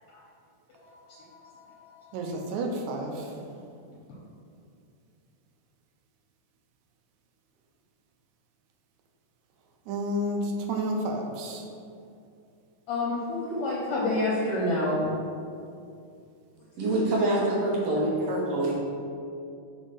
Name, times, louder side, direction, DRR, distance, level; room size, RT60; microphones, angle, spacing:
voice 1, 2.1-3.4 9.9-11.7, right 1 dB, 80° right, 2 dB, 2.0 m, -30 dB
voice 2, 12.9-15.0, left 2 dB, 75° left, -5 dB, 1.4 m, -27 dB
voice 3, 16.8-18.7, right 1 dB, 65° right, -5 dB, 1.5 m, -25 dB
5.0 x 3.6 x 5.5 m, 2.5 s
omnidirectional pair, 3.7 m